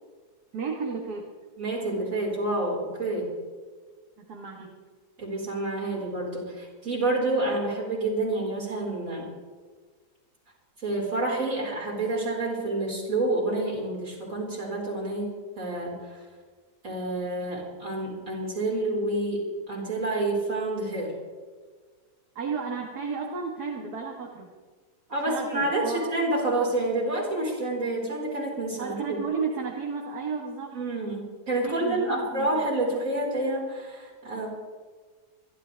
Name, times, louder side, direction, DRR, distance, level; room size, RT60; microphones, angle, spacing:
voice 1, 0.5-1.3 4.2-4.8 22.4-24.5 25.3-26.0 28.8-30.7 31.6-32.7, right 5 dB, 70° right, 0 dB, 2.1 m, -33 dB
voice 2, 1.6-3.3 5.2-9.3 10.8-15.3 15.6-16.2 16.8-21.1 25.1-29.2 30.7-34.5, right 2 dB, 55° right, -4 dB, 5.1 m, -28 dB
27.0 x 12.0 x 3.4 m, 1.5 s
omnidirectional pair, 1.7 m